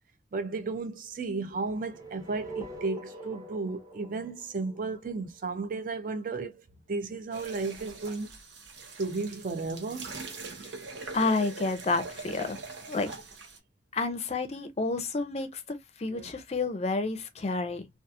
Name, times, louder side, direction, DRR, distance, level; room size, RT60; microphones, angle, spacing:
voice 1, 0.3-6.6 6.9-8.3 9.0-10.2 16.1-16.3, right 3 dB, 45° right, 0.4 m, -34 dB
sound 1, 1.6-5.7, right 3 dB, 15° right, 0.8 m, -44 dB
sound 2, 7.3-13.6, right 4 dB, 80° right, 0.8 m, -43 dB
voice 2, 11.1-12.6 12.9-13.2 13.9-17.9, left 3 dB, 35° left, 0.4 m, -30 dB
2.8 x 2.3 x 2.3 m
head